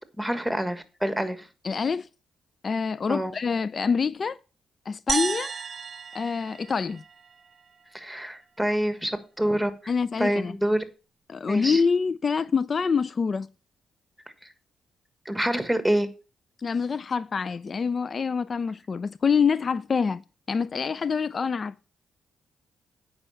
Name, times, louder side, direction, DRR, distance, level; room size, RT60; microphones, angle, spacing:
voice 1, 0.2-1.5 3.1-3.3 7.9-9.9 10.2-10.8 11.5-11.8 14.4-14.5 15.2-16.1, right 1 dB, ahead, 1.5 m, -27 dB
voice 2, 1.6-2.1 2.6-4.4 4.9-5.5 6.1-7.0 9.9-10.6 11.3-13.5 16.6-20.2 20.5-21.8, left 5 dB, 45° left, 0.3 m, -26 dB
sound 1, 5.1-7.5, right 5 dB, 45° right, 0.5 m, -32 dB
8.8 x 5.4 x 5.6 m
supercardioid pair, 60°, 0 cm